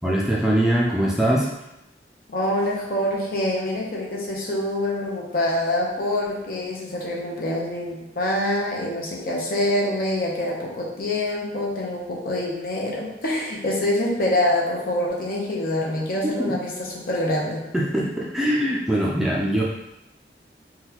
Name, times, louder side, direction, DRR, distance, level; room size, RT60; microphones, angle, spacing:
voice 1, 0.0-1.5 16.4-16.5 17.7-19.6, right 1 dB, ahead, -5 dB, 0.3 m, -22 dB
voice 2, 2.3-17.6, left 1 dB, 50° left, -3 dB, 0.7 m, -25 dB
3.7 x 2.3 x 2.8 m, 0.89 s
head